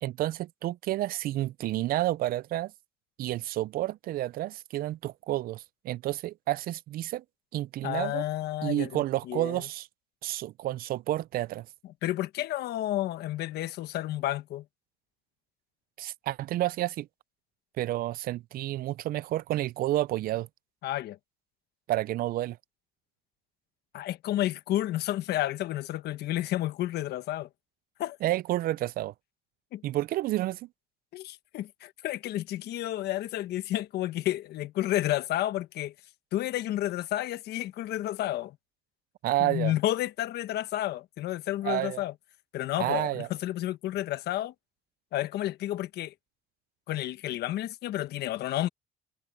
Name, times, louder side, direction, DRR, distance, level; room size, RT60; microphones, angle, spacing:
voice 1, 0.0-2.7 3.2-7.2 7.5-8.2 8.6-9.9 10.2-11.7 16.0-17.1 17.8-20.5 21.9-22.6 28.2-29.1 29.8-30.7 39.2-39.7 41.6-42.0 42.8-43.3, right 15 dB, 60° right, 0.4 m, -30 dB
voice 2, 7.8-9.7 12.0-14.6 20.8-21.2 23.9-27.5 28.0-28.2 29.7-29.8 31.1-35.9 36.3-38.6 39.4-42.1 42.5-44.5 45.1-46.1 46.9-48.7, left 14 dB, 75° left, 1.3 m, -31 dB
cardioid pair, 110°, 17 cm